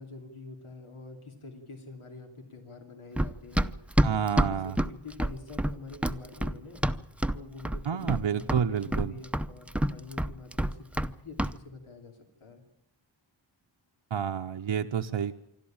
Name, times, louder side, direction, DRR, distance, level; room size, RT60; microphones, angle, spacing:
voice 1, 0.0-3.7 4.4-6.8 7.3-12.6, left 3 dB, 85° left, 3 dB, 2.9 m, -46 dB
Run, 3.2-7.4 7.7-8.2 8.5-11.1 11.4-11.6, right 1 dB, 5° right, 0.7 m, -27 dB
voice 2, 4.0-4.8 7.9-9.2 14.1-15.3, right 8 dB, 70° right, 5 dB, 0.9 m, -29 dB
26.5 x 12.5 x 8.8 m, 0.84 s
wide cardioid pair, 65°, 48 cm